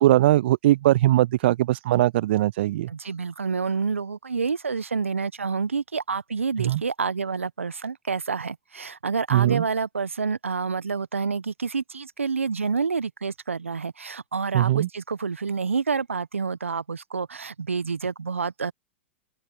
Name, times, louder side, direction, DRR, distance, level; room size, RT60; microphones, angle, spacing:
voice 1, 0.0-2.9 6.6-6.8 9.3-9.6 14.5-14.9, right 14 dB, 60° right, 0.4 m, -20 dB
voice 2, 2.9-18.7, right 5 dB, 80° right, 1.4 m, -28 dB
open air
figure-of-eight pair, 100°, 7 cm